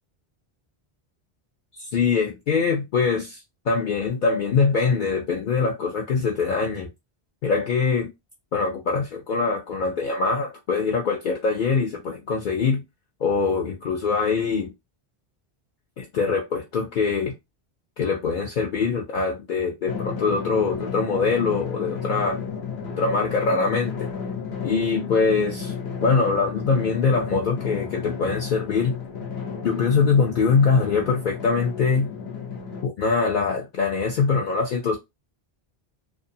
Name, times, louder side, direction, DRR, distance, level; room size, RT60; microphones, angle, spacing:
voice 1, 1.7-6.9 7.4-8.1 8.5-12.8 13.2-14.7 16.0-17.3 18.0-22.4 23.0-24.1 24.6-25.7 26.0-29.0 29.6-32.1 32.8-35.0, left 4 dB, 60° left, 0.6 m, -23 dB
Drum, 19.9-32.8, left 6 dB, 80° left, 1.0 m, -33 dB
2.6 x 2.3 x 2.6 m
omnidirectional pair, 1.1 m